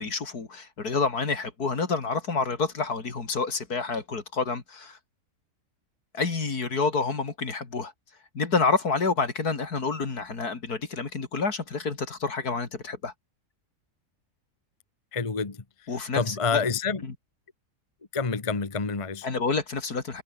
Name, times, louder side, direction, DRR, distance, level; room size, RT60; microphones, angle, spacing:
voice 1, 0.0-5.0 6.1-7.9 8.3-13.1 15.9-16.7 17.0-17.1 19.2-20.2, left 4 dB, 65° left, 3.4 m, -28 dB
voice 2, 15.1-15.6 16.2-17.0 18.1-19.3, left 5 dB, 20° left, 1.2 m, -27 dB
omnidirectional pair, 1.7 m